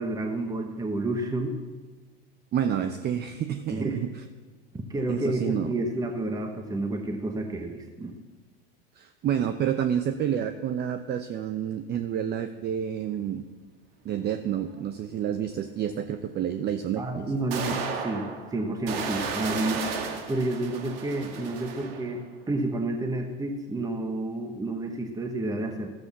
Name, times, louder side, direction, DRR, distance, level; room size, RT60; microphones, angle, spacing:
voice 1, 0.0-1.6 3.7-4.1 4.7-8.1 17.0-19.8 20.3-25.9, right 2 dB, 10° right, 4 dB, 1.1 m, -30 dB
voice 2, 2.5-4.2 5.1-5.7 9.0-13.4 14.0-17.3, right 9 dB, 35° right, 9 dB, 0.7 m, -29 dB
sound 1, 14.8-14.9 16.7-16.8 17.5-22.2, right 5 dB, 75° right, 1.9 m, -34 dB
13.5 x 7.8 x 7.0 m, 1.4 s
hypercardioid pair, 105°, 30 cm